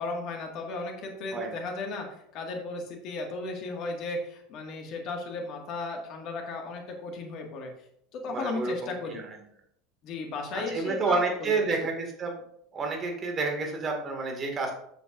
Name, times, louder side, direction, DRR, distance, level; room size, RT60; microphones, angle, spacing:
voice 1, 0.0-7.7 8.1-9.2 10.0-11.2 11.6-11.7, left 3 dB, 50° left, 2 dB, 1.7 m, -35 dB
voice 2, 8.2-9.4 10.5-12.3 12.7-14.7, right 3 dB, 35° right, 2 dB, 1.9 m, -30 dB
11.0 x 6.9 x 2.5 m, 0.71 s
figure-of-eight pair, 75°, 0 cm